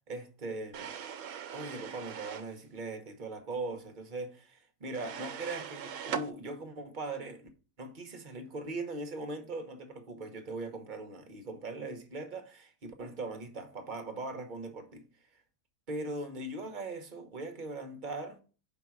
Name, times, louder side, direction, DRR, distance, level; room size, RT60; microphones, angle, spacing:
voice 1, 0.1-0.9 1.5-7.5 7.8-15.1 15.9-18.4, right 2 dB, 40° right, 1.0 m, -40 dB
sound 1, 0.7-2.5 4.9-6.3, right 8 dB, 70° right, 1.0 m, -40 dB
5.3 x 4.0 x 5.9 m
omnidirectional pair, 1.4 m